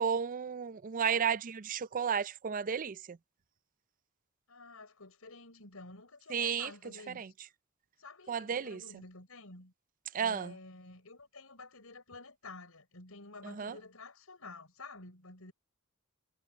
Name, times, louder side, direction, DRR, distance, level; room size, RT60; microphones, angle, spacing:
voice 1, 0.0-3.2 6.3-6.7 7.2-7.3 8.3-8.8 10.1-10.5 13.4-13.8, right 7 dB, 40° right, 0.4 m, -33 dB
voice 2, 4.5-7.3 8.0-9.7 10.2-15.5, left 3 dB, 85° left, 5.0 m, -50 dB
head